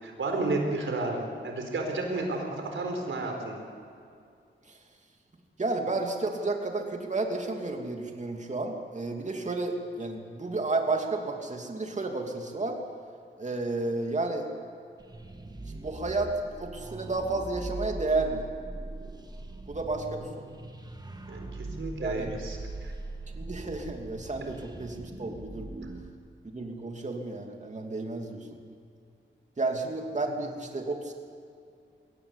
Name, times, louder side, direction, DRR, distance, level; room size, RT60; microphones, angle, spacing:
voice 1, 0.0-3.6 21.3-22.9, right 2 dB, 80° right, 3 dB, 4.4 m, -32 dB
voice 2, 5.6-12.8 13.4-14.5 15.7-18.4 19.7-20.5 22.0-22.3 23.3-25.9 26.5-28.7 29.6-31.1, right 3 dB, 35° right, 2 dB, 2.8 m, -32 dB
sound 1, 15.0-26.1, right 2 dB, 20° right, 1.6 m, -41 dB
22.0 x 18.0 x 8.4 m, 2.4 s
wide cardioid pair, 95°, 20 cm